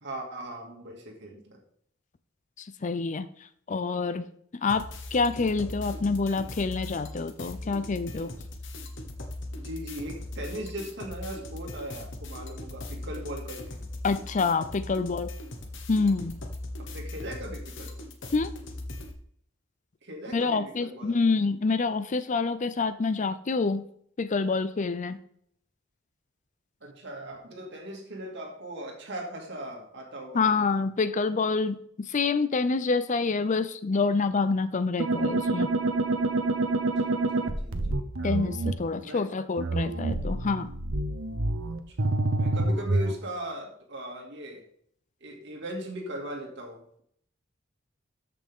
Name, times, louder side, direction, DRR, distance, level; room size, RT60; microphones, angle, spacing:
voice 1, 0.0-1.6 9.6-13.6 16.8-18.0 20.0-21.2 26.8-30.8 37.0-38.0 39.0-39.2 40.1-40.2 41.9-44.6 45.2-46.8, right 1 dB, 60° right, 0 dB, 2.3 m, -39 dB
voice 2, 2.6-3.3 3.7-4.3 4.6-8.3 14.0-15.3 15.9-16.4 18.3-18.5 20.3-23.8 24.2-25.2 30.3-35.7 38.2-40.7, left 4 dB, 40° left, 13 dB, 0.5 m, -27 dB
sound 1, 4.7-19.1, left 1 dB, 65° left, 1.3 m, -39 dB
sound 2, 35.0-38.7 39.6-43.1, right 2 dB, 85° right, 1.0 m, -27 dB
13.5 x 5.8 x 3.6 m, 0.66 s
head